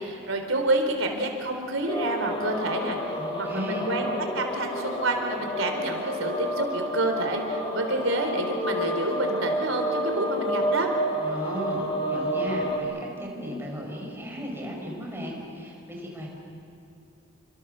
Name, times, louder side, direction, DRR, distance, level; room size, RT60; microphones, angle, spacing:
voice 1, 0.0-3.0 3.5-4.1 4.3-10.9, right 2 dB, 75° right, 4 dB, 3.8 m, -28 dB
sound 1, 1.9-12.8, equal, 25° left, 3.4 m, -30 dB
voice 2, 3.2-3.9 11.2-16.3, equal, 10° right, -1 dB, 5.7 m, -35 dB
29.0 x 24.5 x 6.9 m, 2.8 s
head